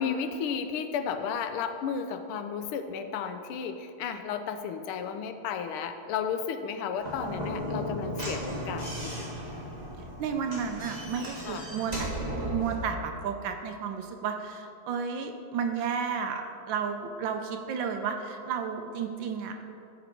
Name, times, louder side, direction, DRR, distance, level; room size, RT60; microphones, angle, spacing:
voice 1, 0.0-9.3 11.5-11.7, left 7 dB, 80° left, 8 dB, 1.5 m, -33 dB
Slam / Knock, 7.0-12.8, equal, 20° right, 1.8 m, -35 dB
voice 2, 10.2-19.5, right 6 dB, 70° right, 5 dB, 1.3 m, -32 dB
13.0 x 5.3 x 4.4 m, 2.6 s
omnidirectional pair, 2.3 m